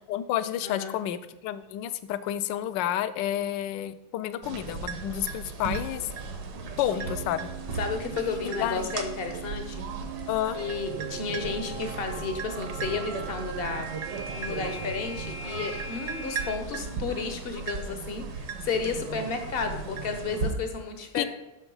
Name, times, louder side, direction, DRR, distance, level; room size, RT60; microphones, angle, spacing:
voice 1, 0.1-6.1 6.8-7.5 8.4-8.9 10.3-10.6 21.2-21.3, left 11 dB, 75° left, 13 dB, 1.1 m, -30 dB
voice 2, 0.6-1.0 6.9-7.2 7.8-9.8 10.5-13.9 14.3-21.2, left 4 dB, 55° left, 6 dB, 0.6 m, -32 dB
sound 1, 4.4-20.5, right 4 dB, 60° right, 1.3 m, -36 dB
sound 2, 6.9-16.5, right 4 dB, 85° right, 2.0 m, -42 dB
8.0 x 6.2 x 5.4 m, 0.98 s
omnidirectional pair, 2.3 m